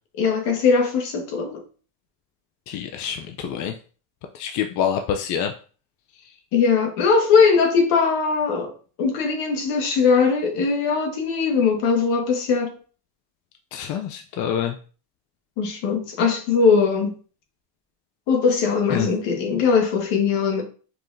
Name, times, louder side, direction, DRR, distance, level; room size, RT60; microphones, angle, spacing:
voice 1, 0.2-1.6 6.5-8.7 9.0-12.8 15.6-17.2 18.3-20.6, left 5 dB, 55° left, 1.5 m, -20 dB
voice 2, 2.7-3.7 4.3-5.5 13.7-14.8 18.9-19.1, left 8 dB, 40° left, 0.5 m, -26 dB
4.8 x 3.6 x 2.6 m
supercardioid pair, 120°, 49 cm